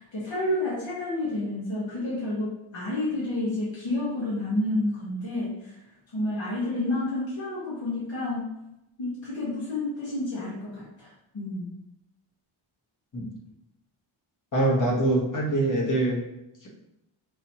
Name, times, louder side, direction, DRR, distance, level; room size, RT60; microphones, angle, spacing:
voice 1, 0.0-5.8 6.1-8.5 9.0-11.7, left 1 dB, 70° left, -9 dB, 1.5 m, -30 dB
voice 2, 14.5-16.2 16.6-16.7, right 1 dB, 40° left, -3 dB, 1.2 m, -24 dB
5.3 x 2.9 x 2.9 m, 0.89 s
wide cardioid pair, 135°, 48 cm